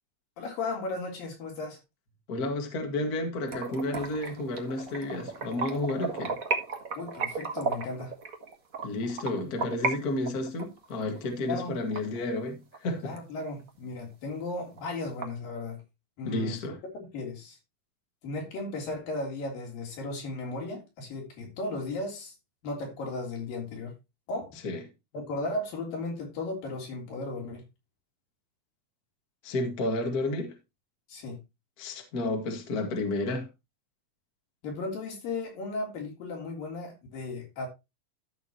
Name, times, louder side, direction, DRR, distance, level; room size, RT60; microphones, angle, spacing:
voice 1, 0.4-1.8 7.0-8.1 11.4-11.7 13.0-15.8 16.2-16.6 16.9-17.6 18.2-22.3 22.6-23.9 24.3-24.6 25.1-27.6 31.1-31.4 34.6-37.7, left 2 dB, 75° left, 5.2 m, -35 dB
voice 2, 2.3-6.4 8.8-13.2 16.2-16.8 24.6-24.8 29.4-30.5 31.8-33.5, left 2 dB, 35° left, 1.8 m, -31 dB
sound 1, 3.5-9.9 10.2-12.8 13.2-13.3 13.7-13.8 14.1-14.2 14.5-15.2, right 4 dB, 55° right, 0.9 m, -34 dB
14.0 x 6.7 x 3.0 m
omnidirectional pair, 4.1 m